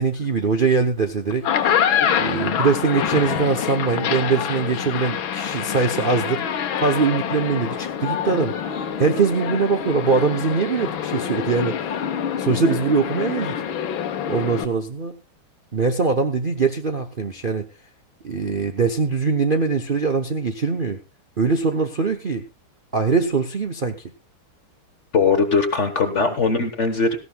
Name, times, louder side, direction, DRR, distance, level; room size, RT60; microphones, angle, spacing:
voice 1, 0.0-1.7 2.2-6.4 6.8-8.5 9.0-11.8 12.4-13.6 14.3-15.2 15.7-17.7 18.2-21.0 21.4-22.4 22.9-24.0, right 4 dB, 70° right, 5 dB, 0.5 m, -22 dB
sound 1, 1.3-14.7, left 8 dB, 70° left, 1.8 m, -26 dB
voice 2, 25.1-27.2, left 4 dB, 40° left, 8 dB, 1.3 m, -20 dB
17.5 x 15.0 x 2.3 m, 0.25 s
omnidirectional pair, 2.3 m